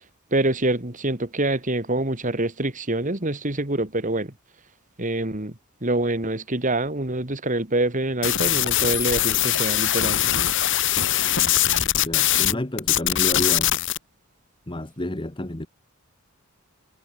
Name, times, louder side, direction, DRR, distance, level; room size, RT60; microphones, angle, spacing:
voice 1, 0.3-4.3 5.0-10.2, right 2 dB, 35° right, 2.3 m, -25 dB
sound 1, 8.2-12.5 12.8-14.0, left 12 dB, 55° left, 1.7 m, -21 dB
voice 2, 11.2-13.7 14.7-15.7, left 1 dB, 20° left, 1.2 m, -31 dB
head